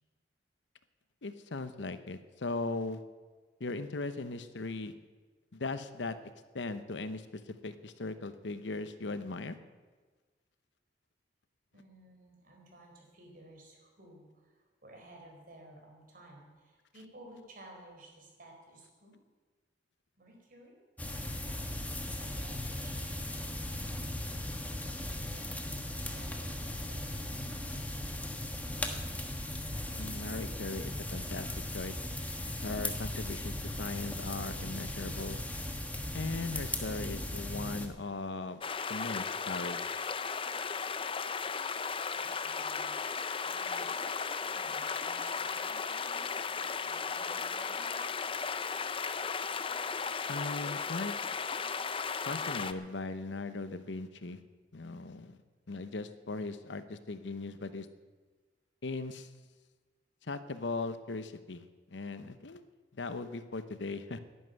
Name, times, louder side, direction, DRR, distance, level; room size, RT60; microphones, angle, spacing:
voice 1, 1.2-3.0 3.6-4.9 5.5-6.2 6.5-9.6 30.0-31.5 31.7-32.0 32.6-35.4 36.1-38.6 38.9-39.8 50.3-51.1 52.2-54.4 54.7-55.4 55.7-57.9 58.8-59.3 60.2-61.6 61.9-62.6 62.9-64.2, left 3 dB, 90° left, 12 dB, 0.9 m, -38 dB
voice 2, 11.7-19.2 20.2-21.6 22.1-28.8 42.1-42.9 43.4-48.1, right 1 dB, 50° right, 1 dB, 4.2 m, -56 dB
sound 1, 21.0-37.9, left 1 dB, 10° left, 1.3 m, -38 dB
sound 2, 38.6-52.7, left 5 dB, 30° left, 0.6 m, -35 dB
11.0 x 11.0 x 9.2 m, 1.4 s
head